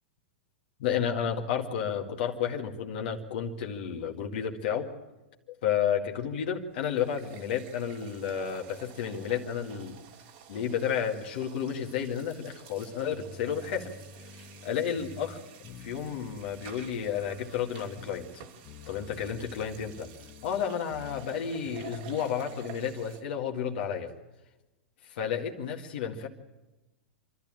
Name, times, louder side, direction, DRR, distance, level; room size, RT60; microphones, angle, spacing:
voice 1, 0.8-4.9 5.5-10.0 10.5-13.9 14.3-15.4 15.8-18.4 18.9-20.1 20.4-24.1 25.1-26.3, left 8 dB, 60° left, 2 dB, 2.1 m, -31 dB
sound 1, 6.5-6.6 6.9-23.2, right 9 dB, 55° right, 2.1 m, -51 dB
sound 2, 13.1-23.0, left 5 dB, 45° left, 1.6 m, -50 dB
27.0 x 12.5 x 8.8 m, 1.0 s
hypercardioid pair, 100°, 6 cm